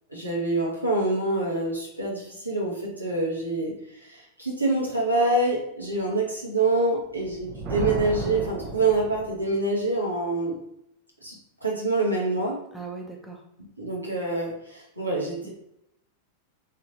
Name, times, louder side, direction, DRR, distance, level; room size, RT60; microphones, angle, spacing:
voice 1, 0.1-3.7 4.0-10.5 11.2-11.3 11.6-12.6 13.8-15.5, right 2 dB, 90° right, -4 dB, 1.2 m, -26 dB
Thunder, 7.2-9.6, right 3 dB, 40° right, 0.8 m, -33 dB
voice 2, 12.7-13.4 15.4-15.5, right 4 dB, ahead, -1 dB, 0.8 m, -38 dB
3.3 x 2.8 x 3.9 m, 0.80 s
figure-of-eight pair, 90°, 0 cm